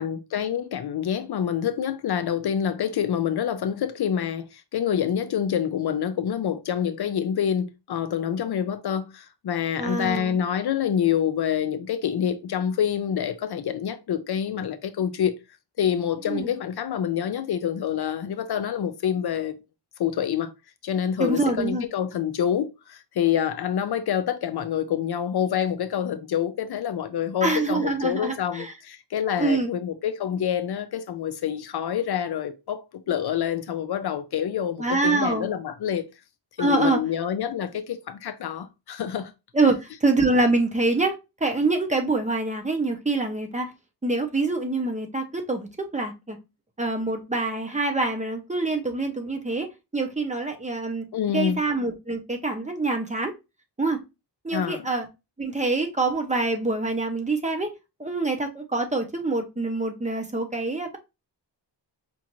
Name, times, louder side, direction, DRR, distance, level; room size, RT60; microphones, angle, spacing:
voice 1, 0.0-15.4 15.8-19.6 20.0-20.5 20.8-36.1 36.6-39.3 51.1-51.6 54.5-54.8, left 9 dB, 60° left, 0.5 m, -27 dB
voice 2, 9.8-10.4 16.3-16.5 21.2-21.8 27.4-28.7 29.4-29.7 34.8-35.5 36.6-37.0 39.5-43.7 44.0-46.4 46.8-51.0 51.3-53.3 53.8-54.0 54.4-55.1 55.4-57.7 58.0-61.0, right 3 dB, 15° right, 0.6 m, -25 dB
5.2 x 2.4 x 2.9 m
wide cardioid pair, 155°, 43 cm